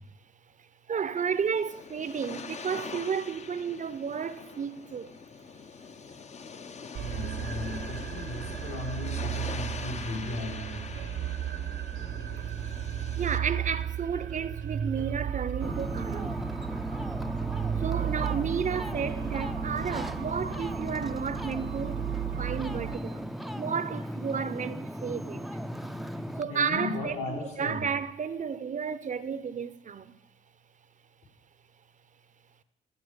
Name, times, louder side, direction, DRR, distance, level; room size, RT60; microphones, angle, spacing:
voice 1, 0.9-5.1 13.2-16.4 17.8-22.1 22.4-23.3 23.6-25.6 26.4-30.2, right 6 dB, 40° right, 0.7 m, -32 dB
sound 1, 1.1-13.4, left 5 dB, 35° left, 0.7 m, -43 dB
voice 2, 6.9-10.9 26.4-27.8, left 2 dB, 75° left, 4.9 m, -36 dB
sound 2, 7.0-23.0, right 10 dB, 65° right, 0.9 m, -35 dB
Ocean, 15.6-26.4, equal, ahead, 0.5 m, -36 dB
15.5 x 5.9 x 8.1 m
cardioid pair, 90°, 20 cm